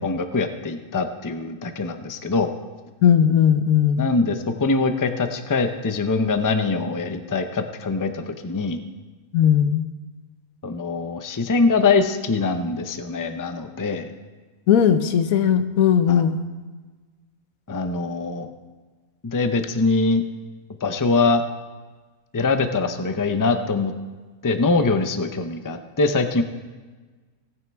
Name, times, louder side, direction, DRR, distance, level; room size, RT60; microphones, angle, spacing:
voice 1, 0.0-2.5 4.0-8.8 10.6-14.1 16.1-16.2 17.7-18.5 19.2-20.2 20.8-21.4 22.3-23.9 24.4-26.4, left 3 dB, 25° left, 8 dB, 0.5 m, -23 dB
voice 2, 3.0-4.1 9.3-9.9 14.7-16.4, left 8 dB, 90° left, 9 dB, 1.2 m, -18 dB
17.0 x 9.4 x 3.5 m, 1.3 s
omnidirectional pair, 1.4 m